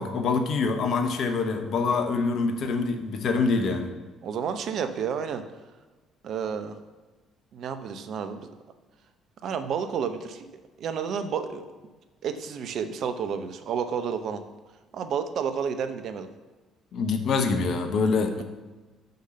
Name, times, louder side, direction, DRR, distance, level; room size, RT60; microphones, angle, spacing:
voice 1, 0.0-3.9 16.9-18.4, left 4 dB, 60° left, 6 dB, 1.1 m, -25 dB
voice 2, 4.2-5.4 6.2-6.8 7.5-8.5 9.4-10.5 10.8-11.6 12.2-14.4 14.9-16.3 18.4-18.5, right 7 dB, 60° right, 9 dB, 0.8 m, -30 dB
6.7 x 5.6 x 6.6 m, 1.3 s
hypercardioid pair, 50°, 0 cm